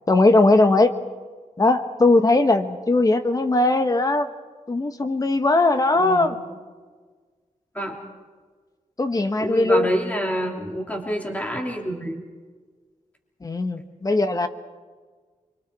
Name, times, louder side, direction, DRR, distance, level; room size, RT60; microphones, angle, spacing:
voice 1, 0.1-0.9 1.6-4.3 4.7-6.4 9.0-9.9 13.4-14.5, left 2 dB, 25° left, 8 dB, 1.3 m, -19 dB
voice 2, 5.9-6.4 7.7-8.0 9.4-12.2, equal, 10° left, 0 dB, 3.1 m, -27 dB
29.0 x 24.0 x 4.8 m, 1.5 s
wide cardioid pair, 170°, 13 cm